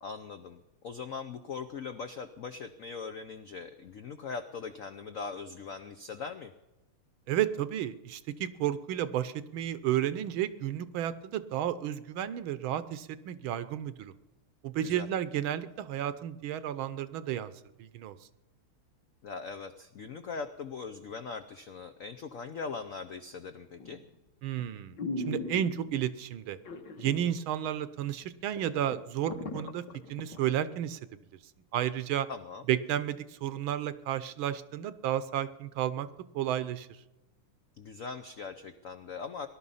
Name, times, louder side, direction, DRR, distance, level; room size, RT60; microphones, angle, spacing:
voice 1, 0.0-6.5 14.8-15.1 19.2-24.0 32.3-32.7 37.8-39.5, left 5 dB, 80° left, 9 dB, 0.7 m, -40 dB
voice 2, 7.3-14.1 14.6-17.5 17.8-18.2 24.4-25.0 25.3-26.6 27.0-29.8 30.1-31.0 31.7-32.3 32.7-36.1 36.3-36.9, right 11 dB, 70° right, 14 dB, 1.5 m, -32 dB
sound 1, 23.8-24.1 24.6-24.7 25.0-26.0 26.6-27.3 27.6-27.7 28.2-28.3 28.6-30.4 30.9-31.0, left 2 dB, 55° left, 2.0 m, -38 dB
19.0 x 11.5 x 5.5 m, 1.0 s
omnidirectional pair, 2.4 m